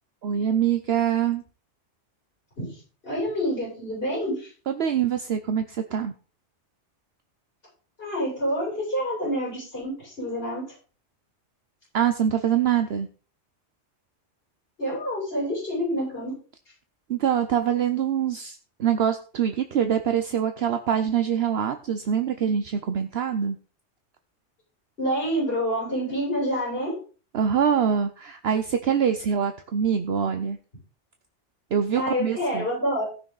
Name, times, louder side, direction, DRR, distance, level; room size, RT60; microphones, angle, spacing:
voice 1, 0.2-1.4 4.7-6.1 11.9-13.1 17.1-23.6 27.3-30.6 31.7-32.7, right 8 dB, 60° right, 8 dB, 1.0 m, -24 dB
voice 2, 2.6-4.5 8.0-10.7 14.8-16.4 25.0-26.9 31.9-33.0, equal, 55° left, -6 dB, 7.9 m, -28 dB
17.5 x 6.3 x 4.0 m, 0.38 s
omnidirectional pair, 1.2 m